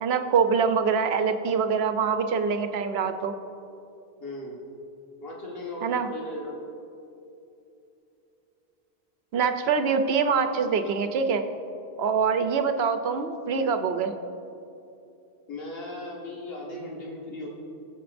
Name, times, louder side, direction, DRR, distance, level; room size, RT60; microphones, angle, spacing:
voice 1, 0.0-3.4 5.8-6.1 9.3-11.4 12.0-14.1, right 5 dB, 75° right, 7 dB, 0.9 m, -24 dB
voice 2, 4.2-4.6 5.2-6.6 15.5-17.5, left 1 dB, 65° left, -4 dB, 1.8 m, -37 dB
21.0 x 7.1 x 2.6 m, 2.8 s
omnidirectional pair, 1.1 m